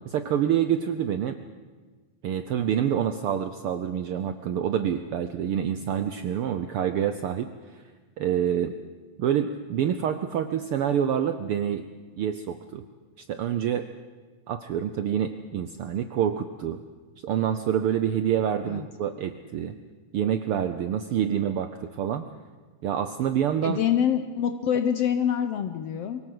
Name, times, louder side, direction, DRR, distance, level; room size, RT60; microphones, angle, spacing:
voice 1, 0.1-1.4 2.2-7.9 8.2-8.7 9.2-11.9 12.2-12.8 13.3-13.9 14.5-16.8 17.2-19.8 20.1-22.2 22.8-23.8, right 9 dB, 85° right, 10 dB, 1.2 m, -27 dB
voice 2, 23.6-26.2, left 9 dB, 70° left, 9 dB, 1.6 m, -25 dB
24.0 x 17.0 x 7.9 m, 1.4 s
omnidirectional pair, 3.5 m